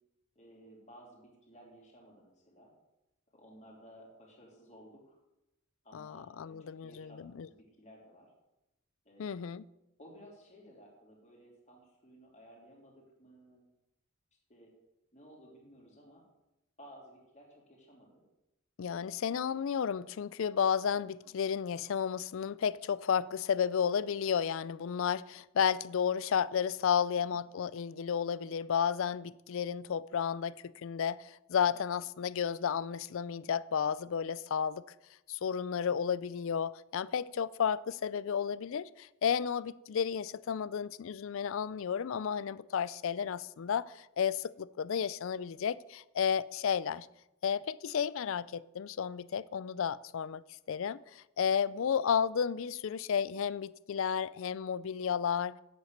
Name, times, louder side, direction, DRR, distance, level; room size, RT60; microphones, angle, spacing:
voice 1, 0.3-2.7 3.3-5.2 5.8-8.3 9.0-9.5 10.0-13.6 14.5-14.7 15.1-16.2 16.8-18.2 18.9-19.1 19.5-19.6 21.0-21.1 51.8-51.9, equal, 35° left, 3.3 m, -56 dB
voice 2, 5.9-7.5 9.2-9.6 18.8-34.8 35.3-47.1 47.4-50.4 50.7-55.5, left 7 dB, 60° left, 0.4 m, -32 dB
9.5 x 8.1 x 6.6 m
head